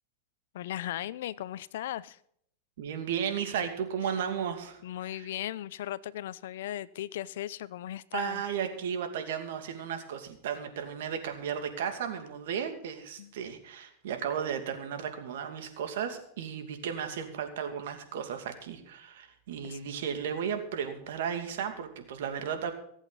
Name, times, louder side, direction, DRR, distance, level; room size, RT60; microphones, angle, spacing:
voice 1, 0.5-2.2 4.8-8.4 13.2-13.3 19.6-19.8, left 12 dB, 75° left, 18 dB, 0.6 m, -37 dB
voice 2, 2.8-4.8 5.1-5.3 8.1-22.7, right 8 dB, 75° right, 6 dB, 2.5 m, -34 dB
24.0 x 8.2 x 4.1 m, 0.68 s
supercardioid pair, 130°, 0 cm